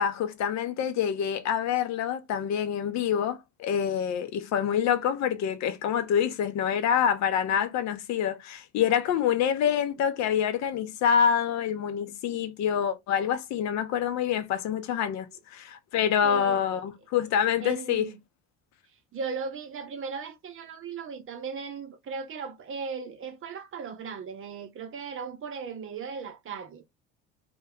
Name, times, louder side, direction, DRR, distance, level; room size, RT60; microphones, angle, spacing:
voice 1, 0.0-18.1, left 8 dB, 55° left, 0.6 m, -26 dB
voice 2, 16.2-16.6 17.6-18.2 19.1-26.8, right 5 dB, 40° right, 0.6 m, -37 dB
2.2 x 2.1 x 3.5 m
hypercardioid pair, 65°, 34 cm